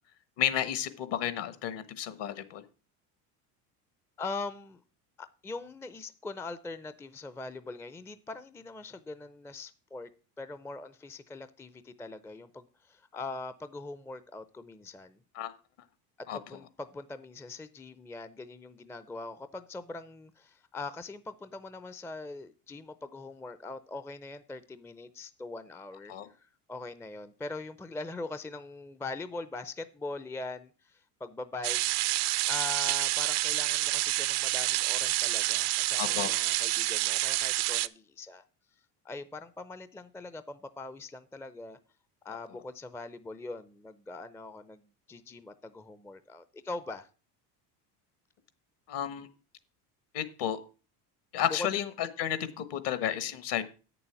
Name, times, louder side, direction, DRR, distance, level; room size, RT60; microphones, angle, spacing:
voice 1, 0.4-2.6 15.3-15.5 16.3-16.4 26.1-26.3 36.0-36.3 48.9-49.3 50.1-50.6 51.3-53.6, left 10 dB, 60° left, 13 dB, 1.3 m, -32 dB
voice 2, 4.2-4.8 5.2-10.1 10.4-15.2 16.2-31.8 32.4-38.4 39.0-41.8 42.2-47.1 51.5-51.7 53.1-53.4, left 3 dB, 5° left, 13 dB, 0.5 m, -42 dB
sound 1, 31.6-37.9, right 18 dB, 60° right, 0.6 m, -28 dB
8.5 x 7.0 x 5.8 m, 0.35 s
hypercardioid pair, 80°, 47 cm